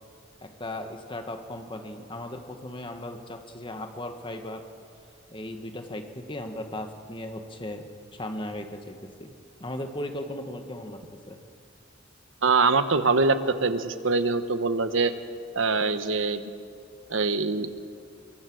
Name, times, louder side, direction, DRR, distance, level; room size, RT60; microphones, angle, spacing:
voice 1, 0.4-4.7 5.3-7.8 8.1-11.4, left 1 dB, 25° left, 5 dB, 1.8 m, -37 dB
voice 2, 12.4-15.1 15.5-16.4 17.1-17.7, right 4 dB, 80° right, 10 dB, 1.2 m, -23 dB
24.0 x 22.5 x 6.4 m, 2.3 s
head